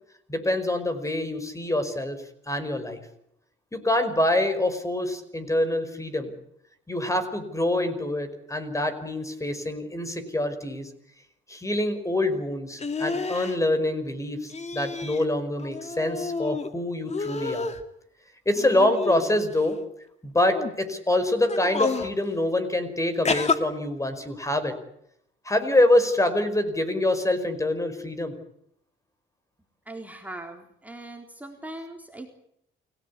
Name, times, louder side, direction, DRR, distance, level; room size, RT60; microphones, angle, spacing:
voice 1, 0.3-2.2 2.5-3.0 3.7-6.3 6.9-10.9 11.5-17.7 18.5-19.8 20.2-24.7 25.5-28.3, left 1 dB, 15° left, 10 dB, 5.4 m, -25 dB
sound 1, 12.8-13.6 14.5-15.3 15.6-16.7 17.1-17.8 18.5-19.6 20.4-20.7 21.4-22.1 23.2-23.6, left 4 dB, 35° left, 2.7 m, -29 dB
voice 2, 29.9-32.3, right 1 dB, 10° right, 2 dB, 4.0 m, -40 dB
29.0 x 18.0 x 8.5 m, 0.75 s
cardioid pair, 90°, 20 cm